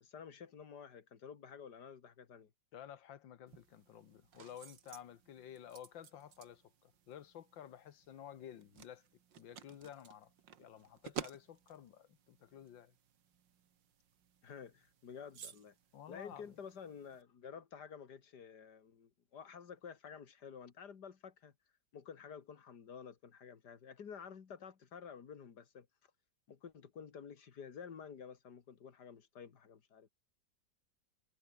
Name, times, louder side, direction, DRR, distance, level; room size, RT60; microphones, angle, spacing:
voice 1, 0.0-2.5 14.4-15.7 16.1-21.5 21.9-25.9 26.5-30.1, left 7 dB, 60° left, 2.4 m, -51 dB
voice 2, 2.7-9.1 9.4-10.3 10.6-12.9 15.9-16.6, left 10 dB, 85° left, 2.0 m, -53 dB
sound 1, 3.5-17.2, right 8 dB, 80° right, 2.2 m, -54 dB
omnidirectional pair, 2.0 m